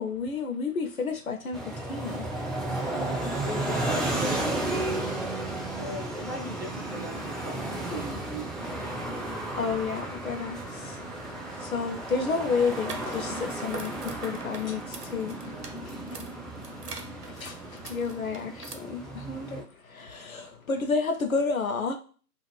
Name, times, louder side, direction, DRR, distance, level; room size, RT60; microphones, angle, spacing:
voice 1, 0.0-2.6 9.5-15.7 16.7-16.9 17.3-22.0, left 4 dB, 60° left, 0.6 m, -31 dB
sound 1, 1.5-19.6, right 2 dB, ahead, 0.3 m, -33 dB
voice 2, 3.4-4.6 5.8-8.9 15.4-16.0, equal, 40° right, 0.6 m, -39 dB
voice 3, 8.9-9.6 11.1-11.7 16.0-17.9 20.5-20.6, left 6 dB, 85° left, 1.0 m, -56 dB
sound 2, 12.6-18.7, right 4 dB, 75° right, 0.8 m, -44 dB
3.0 x 2.4 x 3.2 m
hypercardioid pair, 175°, 48 cm